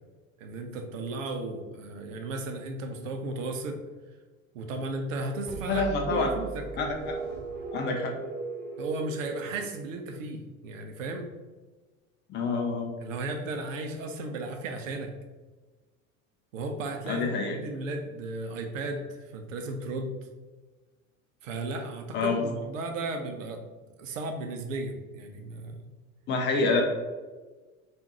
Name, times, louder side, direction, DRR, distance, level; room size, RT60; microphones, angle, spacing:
voice 1, 0.4-3.8 4.5-6.7 8.8-11.3 13.0-15.1 16.5-20.2 21.4-25.9, right 2 dB, 65° right, 5 dB, 0.6 m, -35 dB
sound 1, 5.5-10.2, right 4 dB, 25° right, 0.9 m, -38 dB
voice 2, 5.7-6.3 6.8-7.1 7.7-8.1 12.3-12.9 17.1-17.5 22.1-22.4 26.3-26.8, left 4 dB, 25° left, 2 dB, 0.4 m, -27 dB
3.5 x 2.4 x 2.9 m, 1.3 s
figure-of-eight pair, 70°, 42 cm